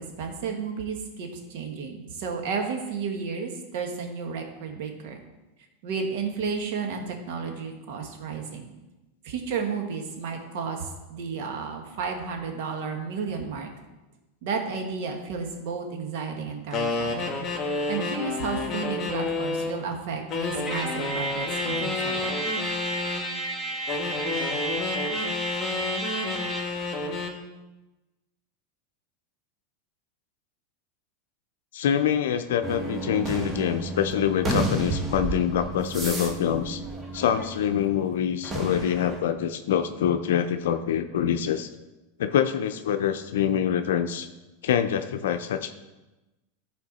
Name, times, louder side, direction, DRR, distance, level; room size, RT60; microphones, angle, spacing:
voice 1, 0.0-5.2 5.8-8.7 9.2-13.7 14.4-17.4 17.9-22.4, right 5 dB, 65° right, 3 dB, 1.5 m, -32 dB
sound 1, 16.7-19.8 20.3-23.3 23.9-27.4, left 3 dB, 30° left, 1.3 m, -30 dB
Trumpet, 20.6-26.8, right 2 dB, 5° right, 2.1 m, -32 dB
voice 2, 31.7-36.8 37.1-41.7 42.2-44.3 44.6-45.7, left 9 dB, 80° left, 8 dB, 0.5 m, -25 dB
sound 2, 32.6-38.0 38.4-39.2, right 2 dB, 20° right, 1.4 m, -31 dB
12.0 x 4.4 x 4.2 m, 1.1 s
supercardioid pair, 120°, 0 cm